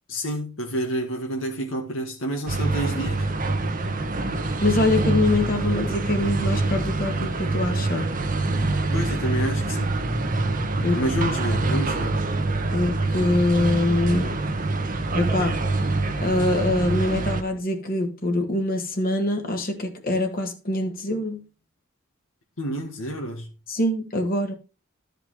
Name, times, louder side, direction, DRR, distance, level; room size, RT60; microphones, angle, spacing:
voice 1, 0.1-3.3 8.9-10.0 10.9-12.2 22.6-23.5, equal, 90° left, 1.9 m, -29 dB
sound 1, 2.5-17.4, right 2 dB, 45° right, 1.2 m, -25 dB
voice 2, 4.6-8.1 10.8-11.0 12.7-14.4 15.1-15.6 16.2-21.4 23.7-24.5, left 2 dB, 45° left, 1.7 m, -24 dB
13.0 x 5.1 x 4.8 m
head